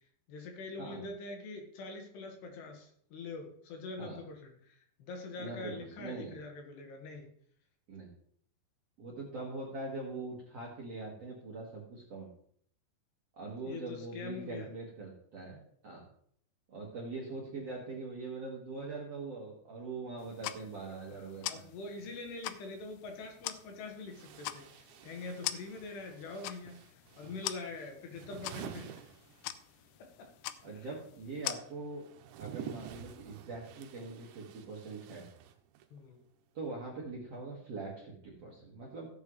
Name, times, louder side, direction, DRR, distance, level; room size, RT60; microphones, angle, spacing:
voice 1, 0.3-7.3 13.6-14.7 21.1-29.0 30.2-30.3 30.7-31.0 35.9-36.2, left 3 dB, 70° left, 3 dB, 3.5 m, -44 dB
voice 2, 5.4-6.3 7.9-8.1 9.0-12.3 13.4-16.1 16.7-21.6 27.2-27.3 30.6-32.0 32.4-35.3 36.5-39.1, right 3 dB, 50° right, -3 dB, 1.9 m, -42 dB
sound 1, 20.2-31.6, left 14 dB, 90° left, 2.3 m, -44 dB
sound 2, 23.2-23.3 24.1-29.9 30.1-36.0, right 9 dB, 80° right, 3.0 m, -50 dB
16.0 x 8.8 x 3.2 m, 0.63 s
omnidirectional pair, 5.3 m